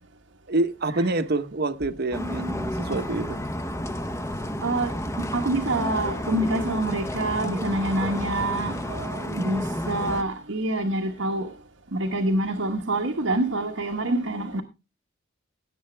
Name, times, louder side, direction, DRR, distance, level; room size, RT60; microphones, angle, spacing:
voice 1, 0.5-3.4 8.3-9.7, right 2 dB, 55° right, 1.0 m, -28 dB
sound 1, 2.1-10.2, left 1 dB, 15° left, 1.0 m, -31 dB
voice 2, 5.2-8.8 9.4-11.5 11.9-14.6, right 1 dB, 85° right, 1.3 m, -26 dB
16.5 x 8.1 x 3.4 m
head